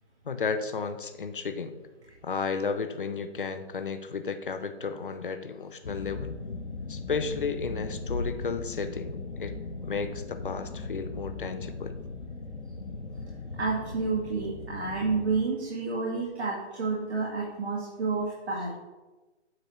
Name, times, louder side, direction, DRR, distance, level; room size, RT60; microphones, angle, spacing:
voice 1, 0.3-1.7 2.2-6.4 6.9-9.5 9.8-12.0, left 5 dB, 50° left, 9 dB, 0.6 m, -33 dB
sound 1, 5.8-15.4, left 3 dB, 85° left, 1.0 m, -38 dB
voice 2, 13.6-18.7, right 4 dB, 65° right, -4 dB, 1.7 m, -30 dB
8.7 x 5.9 x 3.0 m, 1.2 s
hypercardioid pair, 170°, 35 cm